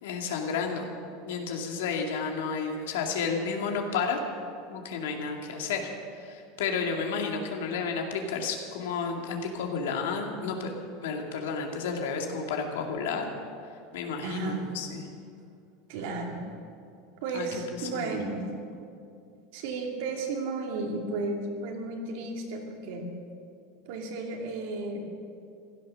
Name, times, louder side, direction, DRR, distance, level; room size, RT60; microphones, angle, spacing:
voice 1, 0.0-0.9 1.2-4.2 4.7-10.7 11.0-13.3 13.9-15.0 17.3-17.5 17.8-18.2, left 5 dB, 90° left, 2 dB, 2.3 m, -31 dB
voice 2, 14.2-14.6 15.9-16.4 17.2-18.5 19.5-23.1 23.9-25.0, right 3 dB, 70° right, 1 dB, 2.6 m, -33 dB
15.5 x 12.0 x 6.4 m, 2.4 s
supercardioid pair, 150°, 0 cm